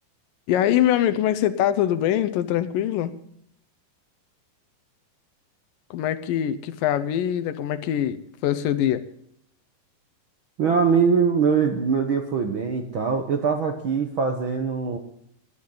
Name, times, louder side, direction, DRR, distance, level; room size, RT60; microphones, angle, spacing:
voice 1, 0.5-3.1 5.9-9.0, left 11 dB, 85° left, 11 dB, 2.6 m, -23 dB
voice 2, 10.6-15.0, right 6 dB, 60° right, 4 dB, 1.3 m, -22 dB
18.5 x 11.5 x 3.9 m, 0.73 s
omnidirectional pair, 3.8 m